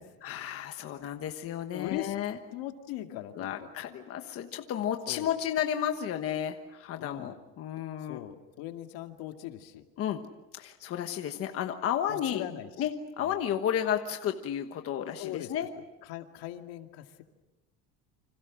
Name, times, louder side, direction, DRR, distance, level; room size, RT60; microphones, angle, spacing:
voice 1, 0.2-2.4 3.4-8.3 10.0-10.2 10.5-12.5 12.8-12.9 13.2-15.7, left 10 dB, 35° left, 5 dB, 1.3 m, -32 dB
voice 2, 1.7-2.2 2.5-3.7 5.1-5.3 7.0-7.3 8.0-9.8 12.1-12.9 13.2-13.4 15.2-15.5 16.0-17.2, left 13 dB, 70° left, 5 dB, 2.4 m, -40 dB
29.5 x 26.5 x 6.3 m, 1.0 s
cardioid pair, 170°, 38 cm